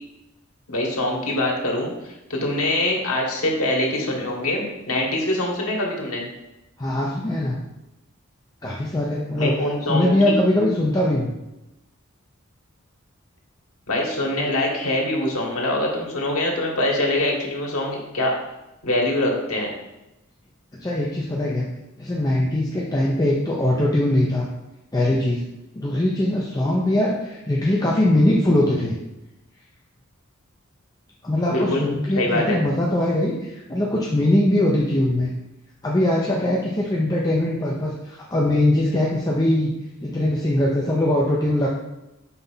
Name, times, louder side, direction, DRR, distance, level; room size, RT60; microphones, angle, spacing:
voice 1, 0.7-6.2 9.3-10.3 13.9-18.4 18.8-19.7 31.5-31.8 32.1-32.6, left 1 dB, 85° left, -1 dB, 1.5 m, -24 dB
voice 2, 6.8-7.6 8.6-9.5 9.9-11.3 20.8-21.7 22.0-24.5 24.9-25.4 25.8-28.9 31.2-35.3 35.8-39.7 40.0-41.7, left 1 dB, 15° left, -4 dB, 0.6 m, -21 dB
5.7 x 3.4 x 5.5 m, 0.93 s
head